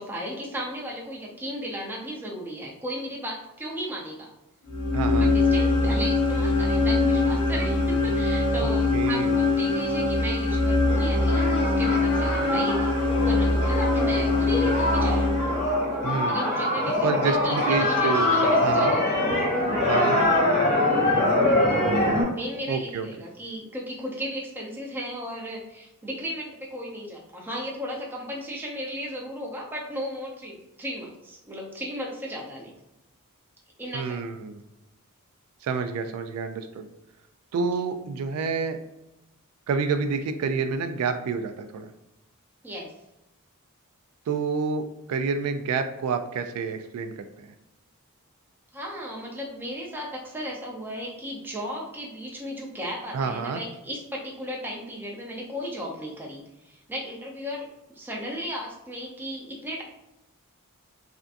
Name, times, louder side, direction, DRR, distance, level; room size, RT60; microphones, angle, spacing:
voice 1, 0.0-4.3 5.2-12.9 13.2-15.6 16.3-19.2 21.4-21.6 22.3-32.7 33.8-34.2 42.6-42.9 48.7-57.7 57.9-59.8, equal, 10° right, -2 dB, 0.6 m, -35 dB
sound 1, 4.7-16.0, left 3 dB, 80° left, 0.9 m, -23 dB
voice 2, 4.9-5.3 8.6-9.4 16.0-16.4 17.0-18.3 18.6-19.0 19.9-20.2 22.7-23.1 33.9-34.6 35.6-36.9 37.5-38.8 39.7-41.9 44.3-47.5 53.1-53.6, right 5 dB, 75° right, 11 dB, 0.3 m, -28 dB
sound 2, 10.9-22.2, left 1 dB, 60° left, 1.3 m, -24 dB
3.4 x 2.6 x 2.4 m, 0.92 s
head